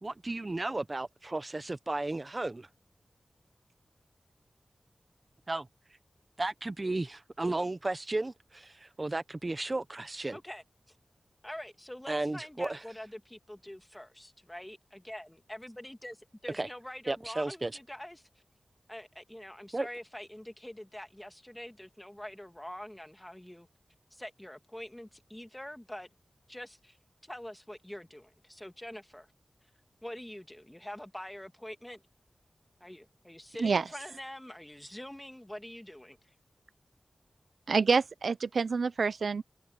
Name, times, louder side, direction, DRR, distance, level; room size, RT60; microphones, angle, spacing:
voice 1, 0.0-2.7 5.5-5.7 6.4-10.4 12.1-12.8 16.5-16.7 17.1-17.7 19.7-19.9, right 2 dB, 35° right, 1.0 m, -34 dB
voice 2, 10.3-11.0 11.4-18.3 18.9-23.7 24.1-26.1 26.5-27.0 27.2-29.3 30.0-32.0 32.8-36.2, left 1 dB, 10° left, 2.1 m, -45 dB
voice 3, 37.7-39.4, right 5 dB, 80° right, 0.5 m, -27 dB
wide cardioid pair, 65°, 0 cm